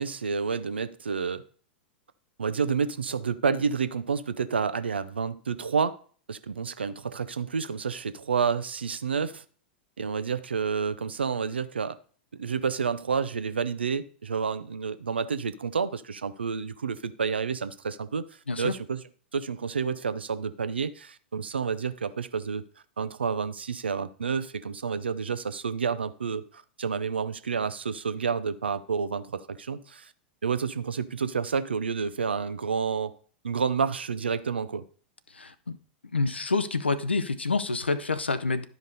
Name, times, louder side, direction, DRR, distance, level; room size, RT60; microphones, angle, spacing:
voice 1, 0.0-1.4 2.4-6.0 6.3-9.4 10.0-12.0 12.3-18.2 18.6-19.0 19.3-22.6 23.0-30.1 30.4-33.1 33.4-34.8, right 6 dB, 75° right, 0.6 m, -29 dB
voice 2, 35.3-35.7 36.0-38.7, left 3 dB, 80° left, 0.6 m, -28 dB
11.5 x 5.2 x 4.0 m
figure-of-eight pair, 95°, 6 cm